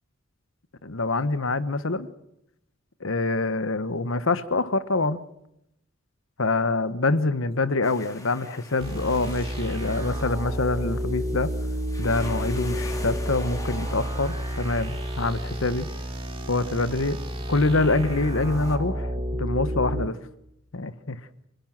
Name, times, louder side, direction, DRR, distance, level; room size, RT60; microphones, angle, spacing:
voice 1, 0.8-2.1 3.0-5.2 6.4-11.5 12.0-15.9 16.5-17.2 17.5-20.2 20.7-21.2, left 3 dB, 70° left, 13 dB, 1.2 m, -25 dB
sound 1, 7.8-18.8, left 2 dB, 15° left, 3.0 m, -45 dB
sound 2, 8.8-20.1, equal, 25° right, 2.7 m, -30 dB
28.5 x 17.0 x 7.5 m, 0.84 s
head